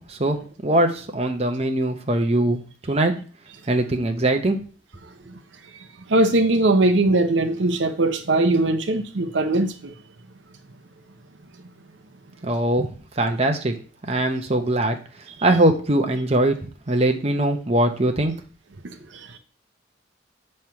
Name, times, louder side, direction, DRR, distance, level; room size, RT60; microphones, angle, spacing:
voice 1, 0.0-2.6 2.9-3.1 3.7-4.6 12.4-12.9 13.2-13.7 14.0-15.0 15.4-16.6 16.9-18.3, right 1 dB, 30° right, 0.8 m, -21 dB
voice 2, 6.1-9.9, right 2 dB, 70° right, 0.7 m, -20 dB
7.2 x 3.2 x 5.8 m
head